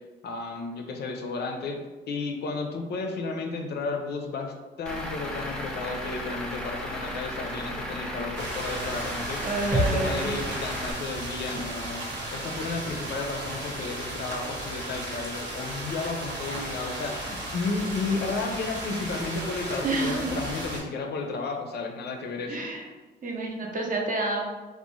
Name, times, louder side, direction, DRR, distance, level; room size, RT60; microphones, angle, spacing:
voice 1, 0.2-1.8 2.1-9.4 9.7-12.0 12.3-22.7, left 3 dB, 55° left, 3 dB, 0.5 m, -33 dB
Truck / Idling, 4.9-10.9, left 1 dB, 5° left, 0.5 m, -35 dB
sound 1, 8.4-20.8, right 1 dB, 65° right, 0.9 m, -35 dB
voice 2, 9.4-10.3 19.8-20.3 22.5-22.9 23.2-24.4, right 2 dB, 40° right, 0 dB, 0.6 m, -29 dB
sound 2, 9.7-13.7 14.0-14.1, equal, 15° right, 0.8 m, -33 dB
2.6 x 2.0 x 3.0 m, 1.2 s
cardioid pair, 90°, 20 cm